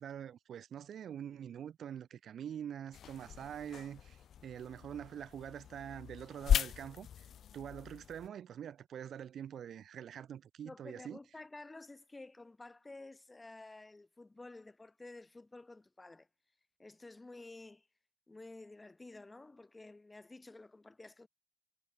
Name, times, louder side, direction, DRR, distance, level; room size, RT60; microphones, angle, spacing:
voice 1, 0.0-7.2 7.5-11.2, right 9 dB, 70° right, 2.5 m, -45 dB
sound 1, 2.9-8.3, left 9 dB, 70° left, 0.3 m, -37 dB
voice 2, 10.6-16.3 16.8-17.9 18.3-21.3, left 2 dB, 20° left, 1.6 m, -52 dB
cardioid pair, 90°, 0 cm